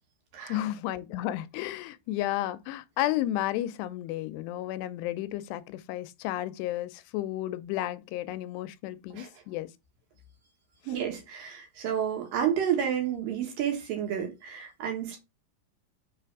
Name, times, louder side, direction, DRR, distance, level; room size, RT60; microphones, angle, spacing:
voice 1, 0.5-9.7, left 14 dB, 90° left, 2.7 m, -32 dB
voice 2, 10.9-15.2, right 9 dB, 65° right, 2.8 m, -30 dB
7.2 x 3.3 x 4.6 m
omnidirectional pair, 4.8 m